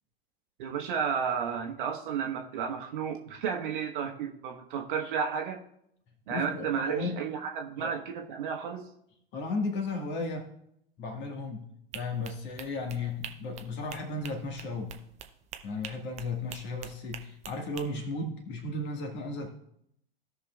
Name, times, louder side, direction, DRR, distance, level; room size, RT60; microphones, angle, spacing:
voice 1, 0.6-5.6 6.3-8.9, right 7 dB, 55° right, 3 dB, 1.2 m, -32 dB
voice 2, 6.3-7.2 7.8-7.9 9.3-10.5 11.0-11.6 11.9-14.9 15.6-19.5, left 2 dB, 35° left, 4 dB, 1.7 m, -34 dB
sound 1, 11.9-17.9, right 9 dB, 25° right, 0.7 m, -45 dB
16.5 x 5.8 x 2.4 m, 0.75 s
figure-of-eight pair, 90°, 30 cm